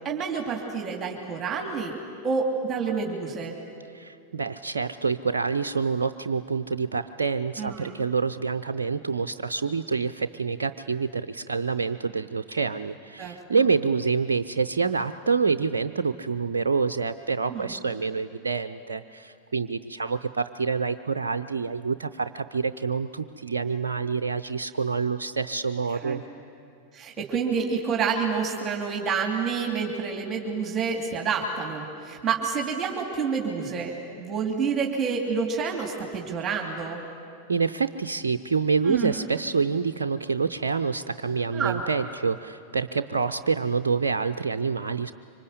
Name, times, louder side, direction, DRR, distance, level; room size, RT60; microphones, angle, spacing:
voice 1, 0.0-1.9 2.2-3.5 7.6-7.9 13.2-13.3 17.5-17.7 25.9-26.2 26.9-37.0 38.9-39.1 41.5-41.8, right 5 dB, 25° right, 1 dB, 2.9 m, -28 dB
voice 2, 3.9-26.2 37.5-45.1, right 5 dB, 70° right, 8 dB, 0.6 m, -27 dB
25.5 x 25.0 x 8.2 m, 2.4 s
figure-of-eight pair, 90°, 0 cm